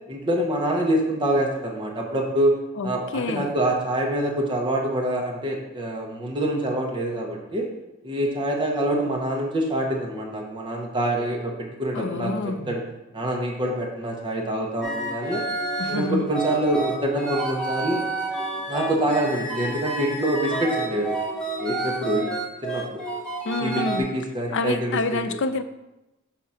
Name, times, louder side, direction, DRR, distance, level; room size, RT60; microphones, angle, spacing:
voice 1, 0.1-2.6 2.8-7.7 8.0-12.3 12.7-12.8 13.1-15.4 15.9-18.1 18.7-21.1 21.6-22.3 22.6-23.0 23.6-25.4, right 1 dB, 25° right, -1 dB, 0.8 m, -25 dB
voice 2, 2.8-3.5 11.9-12.8 15.8-16.3 23.4-24.1 24.5-25.6, left 3 dB, 65° left, 9 dB, 0.5 m, -27 dB
sound 1, 14.8-24.0, right 2 dB, 5° left, 1.0 m, -30 dB
5.8 x 3.7 x 5.5 m, 0.96 s
head